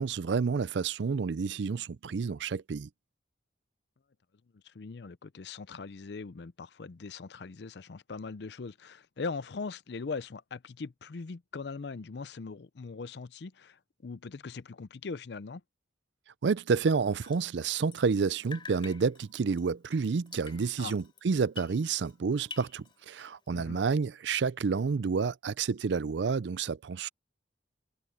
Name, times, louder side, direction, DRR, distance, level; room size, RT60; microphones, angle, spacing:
voice 1, 0.0-2.9 16.4-27.1, right 5 dB, 75° right, 0.4 m, -29 dB
voice 2, 4.5-15.6 20.8-21.0 23.5-23.8, left 4 dB, 65° left, 0.5 m, -40 dB
Drip, 17.0-18.2 18.4-22.2 22.4-23.5, left 4 dB, 25° left, 3.5 m, -49 dB
head